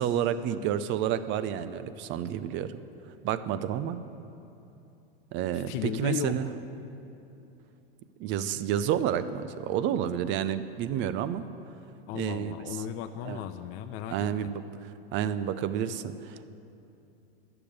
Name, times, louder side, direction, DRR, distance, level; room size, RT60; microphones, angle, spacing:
voice 1, 0.0-2.8 3.2-4.0 5.3-6.5 8.2-11.5 12.1-12.5 13.2-13.4 14.1-14.6 15.1-16.5, right 10 dB, 40° right, 13 dB, 0.6 m, -30 dB
voice 2, 5.5-6.4 12.1-14.5, left 11 dB, 45° left, 6 dB, 0.6 m, -35 dB
11.5 x 6.9 x 8.7 m, 2.8 s
hypercardioid pair, 105°, 30 cm